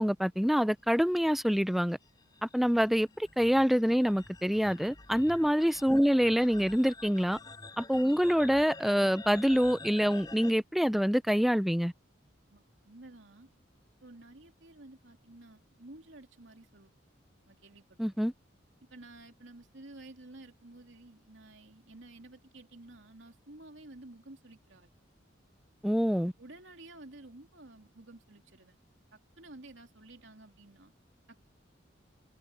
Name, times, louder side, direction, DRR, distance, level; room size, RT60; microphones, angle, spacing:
voice 1, 0.0-2.0 2.4-7.4 7.8-11.9 18.0-18.3 25.8-26.3, equal, ahead, 0.5 m, -26 dB
sound 1, 1.2-10.5, left 3 dB, 20° left, 6.8 m, -49 dB
voice 2, 12.5-13.5 14.0-16.9 17.5-18.0 18.9-24.9 26.1-28.8 29.1-30.9 31.3-31.4, right 2 dB, 75° right, 2.7 m, -52 dB
head